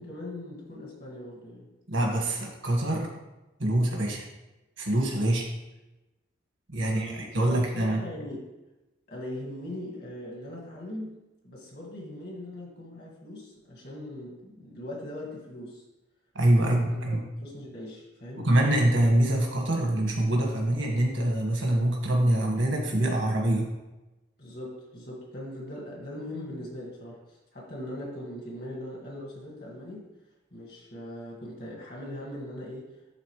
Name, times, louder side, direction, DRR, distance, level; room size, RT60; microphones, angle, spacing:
voice 1, 0.0-1.7 6.8-8.4 9.1-15.8 16.5-18.5 24.4-30.1 30.5-32.9, left 1 dB, 50° left, -3 dB, 2.1 m, -40 dB
voice 2, 1.9-3.1 3.6-4.2 4.8-5.4 6.7-8.0 16.3-17.2 18.4-23.7, right 1 dB, 75° right, 0 dB, 1.8 m, -25 dB
11.5 x 4.1 x 3.3 m, 1.0 s
head